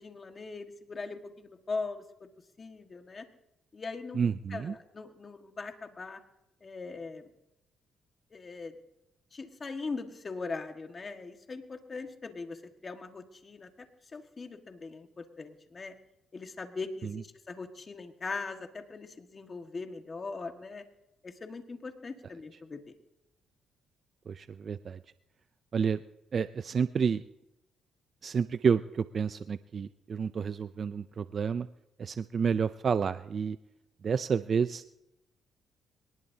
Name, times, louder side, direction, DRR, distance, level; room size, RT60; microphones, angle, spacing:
voice 1, 0.0-2.3 2.6-3.3 3.7-4.2 4.5-6.2 6.6-7.3 8.3-8.8 9.3-13.9 14.1-15.9 16.3-20.8 21.2-22.9, left 4 dB, 35° left, 5 dB, 1.7 m, -40 dB
voice 2, 4.1-4.7 17.0-17.2 24.3-25.0 25.7-26.0 26.3-27.2 28.2-31.7 32.0-33.6 34.0-34.8, right 6 dB, 45° right, 13 dB, 0.4 m, -30 dB
22.5 x 19.5 x 2.8 m, 0.89 s
cardioid pair, 90°, 0 cm